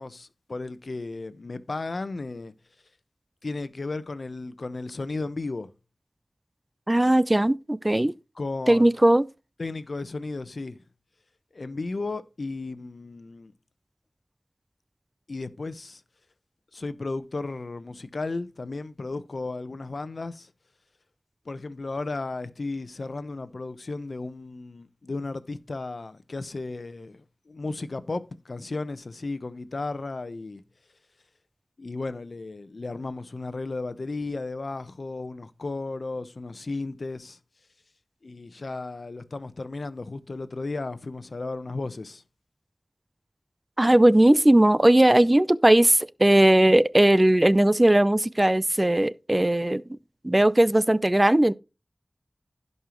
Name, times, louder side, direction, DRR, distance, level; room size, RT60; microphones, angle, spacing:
voice 1, 0.0-2.5 3.4-5.7 8.4-9.0 9.6-10.8 11.5-13.5 15.3-16.0 16.7-20.5 21.5-30.6 31.8-37.4 38.2-42.2, left 3 dB, 80° left, 0.8 m, -34 dB
voice 2, 6.9-8.1 8.7-9.3 43.8-49.8 50.2-51.5, right 1 dB, 25° right, 0.5 m, -18 dB
16.0 x 5.5 x 3.0 m
wide cardioid pair, 45°, 0 cm